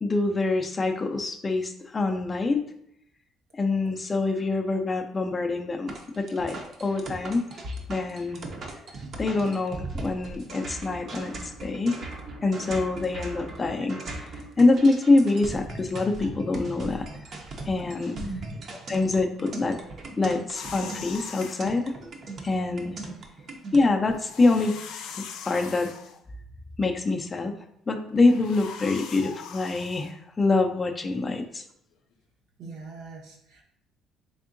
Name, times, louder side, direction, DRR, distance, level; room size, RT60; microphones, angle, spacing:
voice 1, 0.0-2.6 3.5-7.5 7.9-8.4 9.2-11.3 11.6-17.1 17.7-18.2 18.9-19.8 20.2-22.0 22.4-23.0 23.7-25.9 26.8-27.5 27.9-31.6, left 3 dB, 20° left, 5 dB, 0.3 m, -25 dB
sound 1, 5.9-23.8, right 2 dB, 40° right, 0.5 m, -39 dB
voice 2, 18.1-18.5 32.6-33.6, right 2 dB, 75° right, 0 dB, 0.9 m, -39 dB
sound 2, 20.5-21.6 24.1-26.2 28.1-30.1, left 7 dB, 90° left, 0.4 m, -41 dB
3.5 x 3.5 x 2.5 m, 0.71 s
cardioid pair, 150°, 0 cm